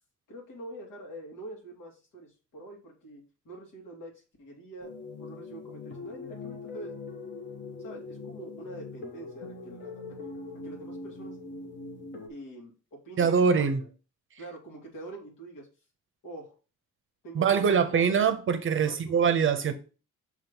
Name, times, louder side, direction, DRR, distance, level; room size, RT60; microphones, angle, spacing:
voice 1, 0.3-4.9 5.2-7.0 7.8-11.4 12.3-13.9 14.4-15.7 16.2-16.6 17.2-17.6 17.9-18.0 18.8-19.2, right 1 dB, 85° left, 2.5 m, -45 dB
sound 1, 4.8-12.3, left 3 dB, 35° left, 0.9 m, -42 dB
voice 2, 13.2-13.9 17.3-19.7, right 6 dB, 40° right, 0.6 m, -23 dB
6.2 x 3.0 x 5.3 m
wide cardioid pair, 175°, 31 cm